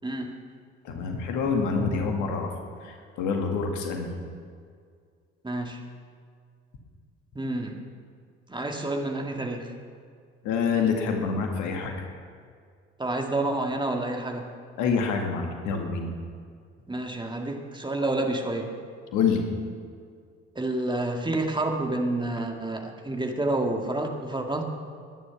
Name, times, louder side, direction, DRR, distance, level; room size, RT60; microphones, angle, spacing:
voice 1, 0.0-0.4 5.4-5.8 7.4-7.8 8.5-9.7 13.0-14.5 16.9-18.7 20.6-24.6, right 2 dB, 15° right, 3 dB, 1.9 m, -29 dB
voice 2, 0.8-2.5 2.8-4.1 10.4-11.9 14.8-16.1 19.1-19.4, left 5 dB, 65° left, 3 dB, 2.0 m, -26 dB
19.5 x 10.5 x 5.9 m, 2.1 s
figure-of-eight pair, 50°, 33 cm